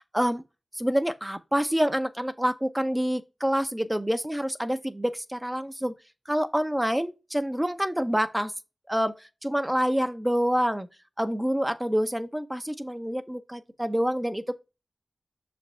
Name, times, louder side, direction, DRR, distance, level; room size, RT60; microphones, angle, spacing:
voice 1, 0.7-5.9 6.3-8.5 8.9-10.9 11.2-14.5, equal, 10° right, 0.7 m, -27 dB
6.4 x 5.1 x 3.3 m
cardioid pair, 50°, 0 cm